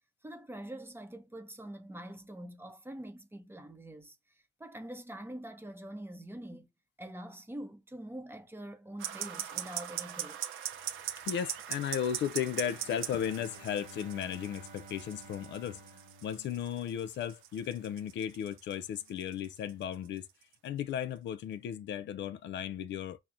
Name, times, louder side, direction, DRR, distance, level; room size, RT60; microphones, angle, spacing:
voice 1, 0.2-4.2 4.6-6.7 7.0-10.4, right 1 dB, 10° right, 0.7 m, -45 dB
sound 1, 9.0-21.0, right 11 dB, 85° right, 0.6 m, -41 dB
voice 2, 11.3-15.8 16.2-20.3 20.6-23.2, left 9 dB, 65° left, 0.4 m, -35 dB
Bowed string instrument, 12.4-17.2, right 1 dB, 45° right, 0.9 m, -54 dB
5.7 x 2.1 x 2.5 m
cardioid pair, 90°, 20 cm